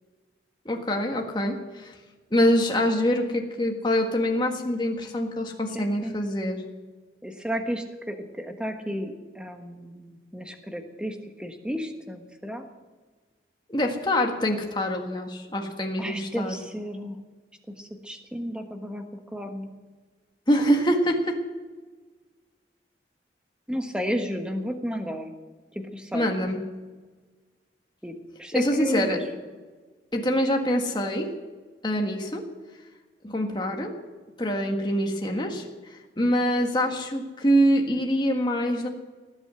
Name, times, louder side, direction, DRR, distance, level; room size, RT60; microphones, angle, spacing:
voice 1, 0.7-1.9 2.3-6.6 13.7-16.5 20.5-21.4 26.1-26.6 28.5-29.2 30.1-31.3 31.8-32.4 33.2-33.9 34.4-35.6 35.9-38.9, equal, 25° left, 2 dB, 1.7 m, -25 dB
voice 2, 5.7-6.2 7.2-12.6 16.0-17.2 17.7-19.0 19.3-19.7 23.7-25.3 25.7-26.3 28.0-29.2, equal, 5° right, 4 dB, 1.4 m, -33 dB
19.0 x 8.1 x 7.8 m, 1.3 s
head